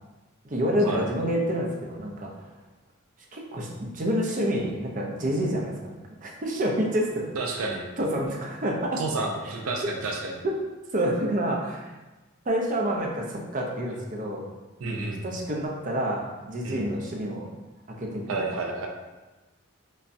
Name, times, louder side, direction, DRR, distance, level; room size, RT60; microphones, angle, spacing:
voice 1, 0.4-2.3 3.3-7.2 8.0-9.0 9.4-9.5 10.0-10.1 10.4-10.5 10.9-11.9 12.5-14.4 15.2-17.6 17.9-18.4, equal, 40° right, -1 dB, 0.6 m, -28 dB
voice 2, 7.4-7.9 9.0-10.4 13.9-14.0 14.8-15.2 16.6-16.8 18.3-18.9, right 3 dB, 85° right, 1 dB, 0.5 m, -30 dB
5.3 x 2.2 x 2.6 m, 1.2 s
head